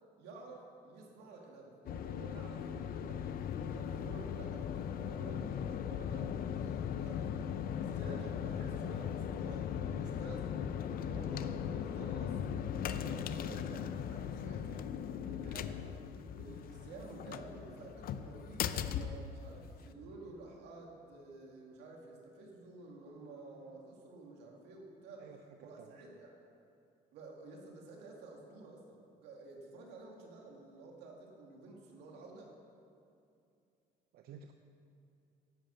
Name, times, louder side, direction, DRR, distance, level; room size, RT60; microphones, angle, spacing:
voice 1, 0.2-7.4 7.7-14.9 15.2-16.1 16.3-25.3 25.6-26.4 27.1-32.5, right 3 dB, 85° right, 0 dB, 2.2 m, -51 dB
sound 1, 1.9-19.9, left 8 dB, 60° left, 0.5 m, -38 dB
voice 2, 25.2-26.0 34.1-34.5, right 7 dB, 65° right, 6 dB, 0.7 m, -53 dB
10.5 x 8.8 x 7.0 m, 2.5 s
cardioid pair, 110°, 17 cm